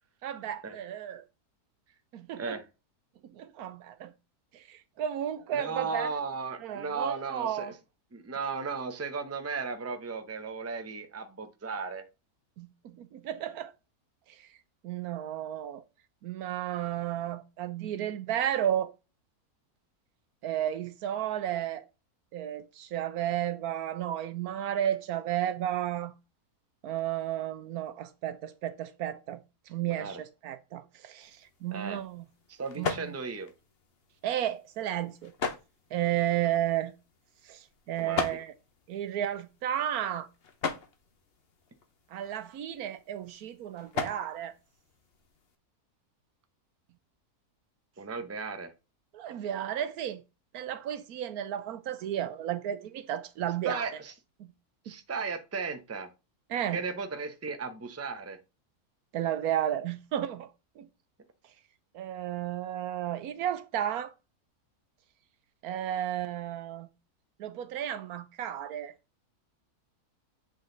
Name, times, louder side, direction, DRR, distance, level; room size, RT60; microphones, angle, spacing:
voice 1, 0.2-1.2 2.1-2.6 3.2-4.1 4.5-6.1 6.6-7.7 12.6-13.7 14.3-14.5 14.8-15.8 16.2-18.9 20.4-21.8 22.3-26.1 26.8-29.4 29.7-32.3 32.8-33.1 34.2-35.3 35.9-36.9 37.4-38.5 38.9-40.3 42.1-44.5 49.1-50.2 50.5-53.9 56.5-56.8 59.1-60.5 60.8-60.9 61.9-64.1 65.6-66.9 67.4-68.9, right 11 dB, 80° right, 1.2 m, -33 dB
voice 2, 2.3-2.6 5.5-7.7 8.1-12.0 29.8-30.2 31.7-32.0 32.5-33.5 38.0-38.4 48.0-48.7 53.6-54.1 54.8-56.1 56.7-58.4, right 4 dB, 15° right, 0.6 m, -35 dB
sound 1, 31.2-45.6, left 5 dB, 45° left, 1.1 m, -40 dB
8.0 x 4.0 x 3.9 m
omnidirectional pair, 1.6 m